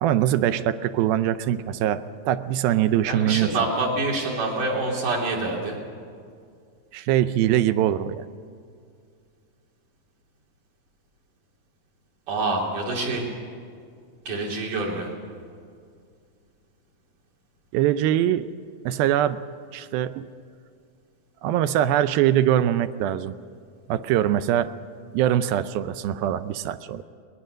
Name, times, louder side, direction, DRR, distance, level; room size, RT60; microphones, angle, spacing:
voice 1, 0.0-3.5 6.9-8.3 17.7-18.5 18.9-19.4 19.7-20.3 21.4-23.3 23.9-24.7 25.1-27.0, right 11 dB, 80° right, 12 dB, 2.4 m, -22 dB
voice 2, 3.0-5.8 12.3-13.3 14.3-15.1, right 2 dB, 60° right, -2 dB, 4.8 m, -26 dB
21.5 x 20.0 x 6.3 m, 2.2 s
omnidirectional pair, 4.2 m